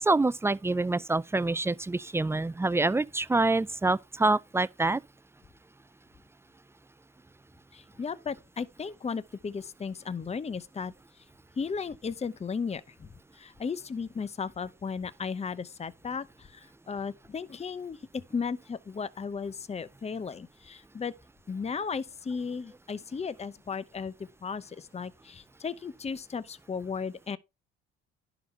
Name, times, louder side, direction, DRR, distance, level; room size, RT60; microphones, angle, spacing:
voice 1, 0.0-5.0, right 2 dB, 10° right, 0.4 m, -26 dB
voice 2, 7.7-10.9 11.6-13.1 13.3-21.1 21.5-24.1 24.4-27.4, left 5 dB, 20° left, 0.8 m, -35 dB
11.0 x 4.0 x 5.6 m
supercardioid pair, 70°, 29 cm